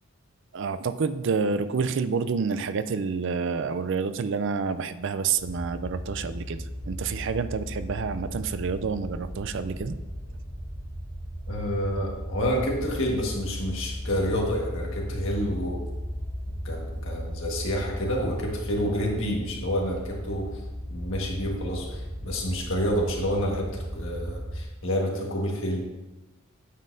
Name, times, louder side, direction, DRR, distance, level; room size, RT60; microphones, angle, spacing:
voice 1, 0.5-6.6 6.9-9.9, right 5 dB, 55° right, 12 dB, 0.4 m, -28 dB
sound 1, 5.4-24.6, equal, 85° right, 2.2 m, -36 dB
voice 2, 11.5-15.8 16.6-20.5 20.9-25.8, equal, 60° left, -1 dB, 1.6 m, -28 dB
9.1 x 7.4 x 2.7 m, 1.1 s
head